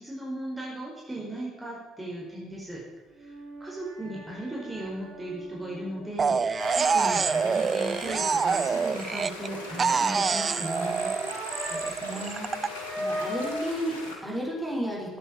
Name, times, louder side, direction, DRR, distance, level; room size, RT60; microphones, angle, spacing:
voice 1, 0.0-2.8 3.6-11.1, right 1 dB, 15° right, -4 dB, 5.1 m, -37 dB
sound 1, 3.1-12.0 12.2-13.7, equal, 70° right, 4.1 m, -39 dB
sound 2, 6.2-9.5 9.8-12.7, right 5 dB, 35° right, 0.4 m, -26 dB
sound 3, 6.6-14.1, left 1 dB, 80° left, 2.7 m, -40 dB
voice 2, 11.7-15.2, equal, 5° left, -2 dB, 5.8 m, -34 dB
14.0 x 10.0 x 7.5 m, 1.2 s
figure-of-eight pair, 50°, 0 cm